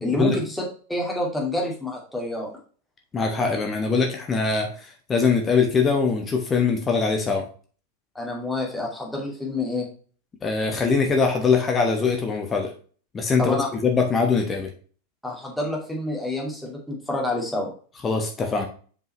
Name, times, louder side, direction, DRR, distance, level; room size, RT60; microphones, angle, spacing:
voice 1, 0.0-0.6 0.9-2.5 8.1-9.9 13.4-13.7 15.2-17.7, left 2 dB, ahead, -3 dB, 2.4 m, -28 dB
voice 2, 3.1-7.4 10.4-12.7 13.1-14.7 18.0-18.7, left 5 dB, 20° left, 3 dB, 1.1 m, -22 dB
7.4 x 5.3 x 3.2 m, 0.42 s
figure-of-eight pair, 90°, 0 cm